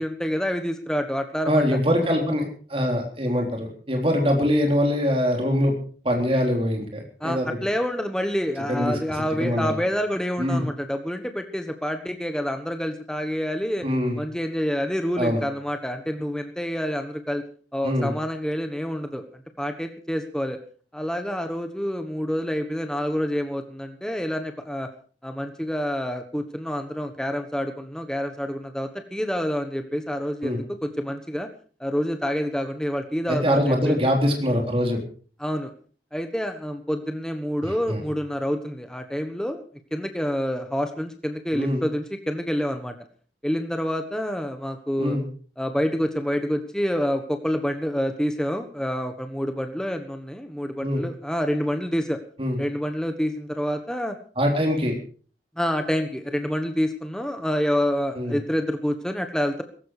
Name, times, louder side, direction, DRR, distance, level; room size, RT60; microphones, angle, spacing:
voice 1, 0.0-1.6 7.2-13.9 14.2-17.4 17.7-19.2 19.6-20.6 20.9-24.9 25.2-31.5 31.8-34.0 35.4-35.7 36.1-39.6 39.9-42.9 43.4-45.2 45.6-52.2 52.6-54.2 55.6-59.6, equal, 5° left, 6 dB, 1.3 m, -27 dB
voice 2, 1.4-5.7 6.0-7.5 8.7-9.0 9.4-9.8 10.4-10.7 13.8-14.2 15.2-15.4 17.8-18.1 30.4-30.6 33.3-35.0 37.6-38.0 41.5-41.8 45.0-45.3 50.8-51.0 52.4-52.6 54.4-54.9 58.1-58.4, equal, 30° right, 2 dB, 3.7 m, -23 dB
17.5 x 15.5 x 4.9 m, 0.42 s
head